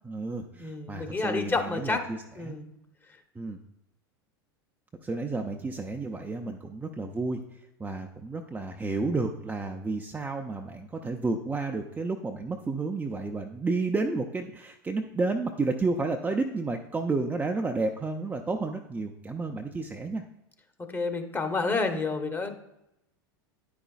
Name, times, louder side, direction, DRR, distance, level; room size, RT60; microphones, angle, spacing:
voice 1, 0.0-2.2 2.5-2.6 3.4-3.6 5.0-7.4 7.8-20.2, right 3 dB, 10° right, 2 dB, 0.5 m, -31 dB
voice 2, 0.6-2.1 2.3-2.7 20.9-22.5, left 3 dB, 15° left, 6 dB, 1.0 m, -29 dB
9.6 x 5.0 x 2.4 m, 0.86 s
hypercardioid pair, 90°, 12 cm